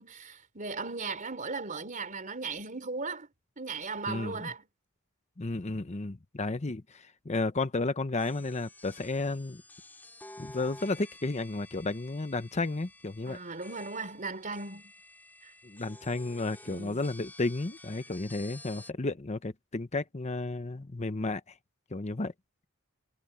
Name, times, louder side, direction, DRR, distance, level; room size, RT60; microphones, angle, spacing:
voice 1, 0.0-3.3 3.6-4.6 13.3-14.9 15.4-15.5 16.7-17.1, right 4 dB, 40° right, 3.7 m, -37 dB
voice 2, 4.1-4.5 5.4-9.6 10.4-13.4 15.6-21.4 21.9-22.3, left 2 dB, 35° left, 0.8 m, -33 dB
sound 1, 8.2-18.9, left 2 dB, 10° left, 5.2 m, -51 dB
head